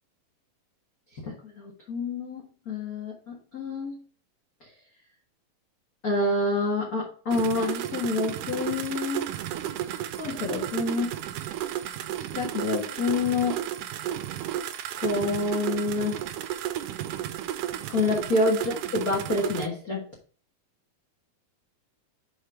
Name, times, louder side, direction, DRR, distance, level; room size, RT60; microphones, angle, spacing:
voice 1, 1.2-3.9 6.0-9.3 9.8-11.1 12.3-13.6 15.0-16.2 17.9-20.0, left 2 dB, 70° left, -1 dB, 0.8 m, -28 dB
sound 1, 7.3-19.7, right 11 dB, 85° right, 1.9 m, -33 dB
6.0 x 5.0 x 4.9 m, 0.39 s
omnidirectional pair, 4.3 m